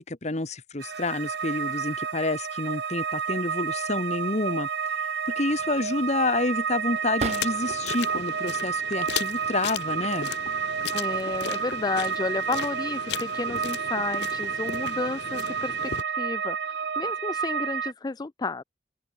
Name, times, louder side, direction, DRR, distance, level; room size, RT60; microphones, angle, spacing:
voice 1, 0.0-4.7 5.3-10.3, left 2 dB, 40° left, 1.5 m, -28 dB
sound 1, 0.8-17.9, right 6 dB, 70° right, 0.7 m, -30 dB
sound 2, 5.5-7.9 8.4-9.2 10.2-10.5 10.8-11.6, right 3 dB, 40° right, 1.3 m, -40 dB
sound 3, 7.3-16.0, left 7 dB, 75° left, 0.7 m, -36 dB
voice 2, 10.9-15.9 16.2-18.6, left 3 dB, 25° left, 0.4 m, -32 dB
open air
head